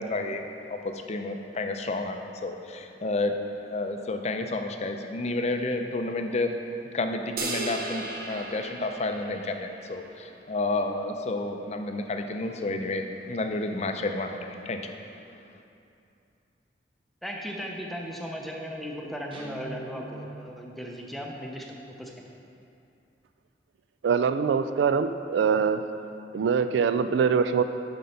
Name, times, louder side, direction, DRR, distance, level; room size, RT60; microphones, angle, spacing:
voice 1, 0.0-3.3 3.7-6.5 6.9-15.0, left 2 dB, 40° left, 5 dB, 0.5 m, -30 dB
sound 1, 7.4-9.9, right 2 dB, 55° right, 0.8 m, -35 dB
voice 2, 17.2-22.2, equal, ahead, 0 dB, 0.7 m, -37 dB
Guitar, 19.3-20.5, right 2 dB, 30° right, 1.0 m, -43 dB
voice 3, 24.0-25.8 26.3-27.6, right 6 dB, 75° right, 10 dB, 0.3 m, -23 dB
7.6 x 5.3 x 5.7 m, 2.6 s
head